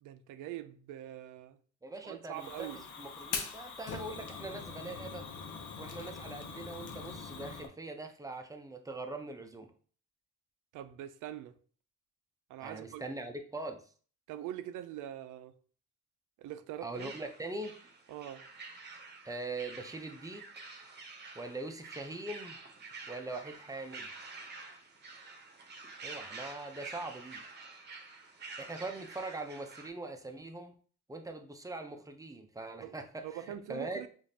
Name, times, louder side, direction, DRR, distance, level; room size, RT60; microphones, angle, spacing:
voice 1, 0.0-1.6 2.0-2.9 10.7-11.5 12.5-13.0 14.3-15.5 16.4-17.1 18.1-18.4 32.8-32.9 33.2-34.1, right 12 dB, 90° right, 0.5 m, -43 dB
voice 2, 1.8-2.7 3.0-5.3 5.8-9.7 12.6-13.8 16.8-17.8 19.2-20.6 21.3-22.6 23.1-24.1 26.0-27.4 28.6-30.7 31.1-34.0, right 2 dB, 10° right, 0.6 m, -42 dB
Fire, 2.3-7.7, left 5 dB, 85° left, 0.8 m, -42 dB
sound 1, 16.9-29.9, right 4 dB, 35° right, 0.9 m, -48 dB
5.0 x 2.5 x 2.8 m
cardioid pair, 90°, 30 cm